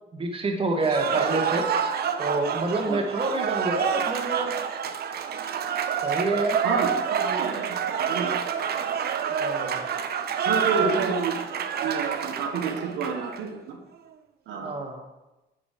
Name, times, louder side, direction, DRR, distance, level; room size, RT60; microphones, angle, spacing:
voice 1, 0.1-1.7 2.2-4.6 6.0-6.6 9.3-9.9 10.8-11.1 14.6-15.0, right 2 dB, 30° right, 2 dB, 1.1 m, -27 dB
Cheering / Applause, 0.8-13.4, right 7 dB, 55° right, 0.5 m, -28 dB
voice 2, 6.6-7.7 8.1-8.3 10.5-11.3 11.8-13.8 14.5-14.7, right 5 dB, 80° right, 3 dB, 0.9 m, -29 dB
5.0 x 4.9 x 4.8 m, 1.0 s
cardioid pair, 90°, 20 cm